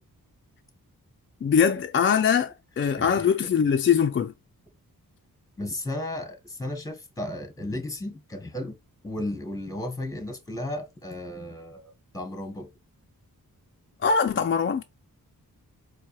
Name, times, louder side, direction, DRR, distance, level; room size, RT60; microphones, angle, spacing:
voice 1, 1.4-4.3 14.0-14.8, left 7 dB, 35° left, 0.4 m, -22 dB
voice 2, 3.0-3.5 5.6-8.8 9.0-12.7, left 1 dB, 10° left, 1.0 m, -34 dB
4.5 x 2.2 x 3.0 m
cardioid pair, 60°, 36 cm